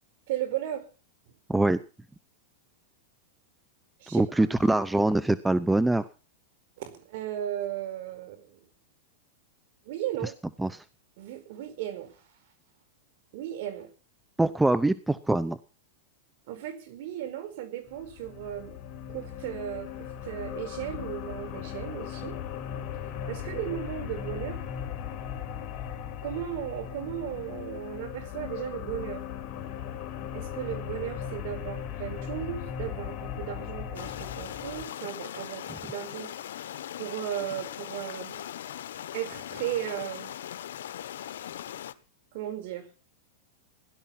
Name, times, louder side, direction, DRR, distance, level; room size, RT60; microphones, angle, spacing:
voice 1, 0.3-0.9 4.0-4.5 6.8-8.6 9.8-10.3 11.2-12.2 13.3-13.9 16.5-18.8 19.1-22.4 23.3-24.6 26.2-29.2 30.3-36.3 37.0-38.5 39.1-40.4 42.3-42.9, right 12 dB, 55° right, 9 dB, 4.8 m, -36 dB
voice 2, 4.1-6.1 10.6-10.8 14.4-15.6, right 2 dB, 5° right, 15 dB, 0.7 m, -24 dB
sound 1, 17.8-34.8, left 9 dB, 35° left, 5.3 m, -38 dB
sound 2, 33.9-41.9, left 11 dB, 80° left, 1.3 m, -39 dB
17.0 x 12.0 x 5.8 m, 0.35 s
supercardioid pair, 145°, 0 cm